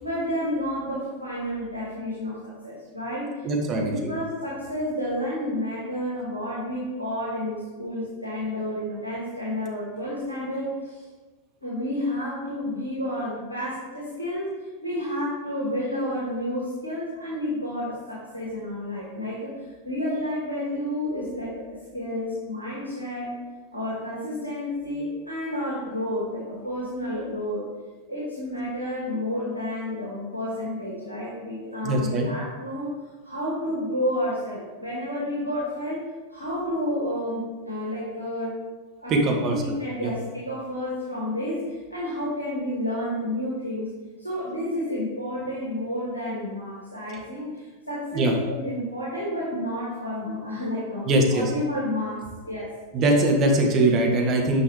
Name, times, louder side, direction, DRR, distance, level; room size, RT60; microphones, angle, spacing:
voice 1, 0.0-3.3 3.7-11.0 11.6-14.5 14.8-23.3 23.7-27.6 28.1-33.0 33.2-36.0 36.3-38.6 39.0-43.9 44.2-52.7, left 1 dB, 85° left, -6 dB, 1.9 m, -30 dB
voice 2, 3.4-4.1 31.8-32.3 39.1-39.6 40.0-40.1 48.1-48.3 51.0-51.5 52.9-54.6, right 1 dB, 35° right, 1 dB, 1.4 m, -21 dB
9.4 x 5.6 x 3.3 m, 1.3 s
figure-of-eight pair, 90°, 0 cm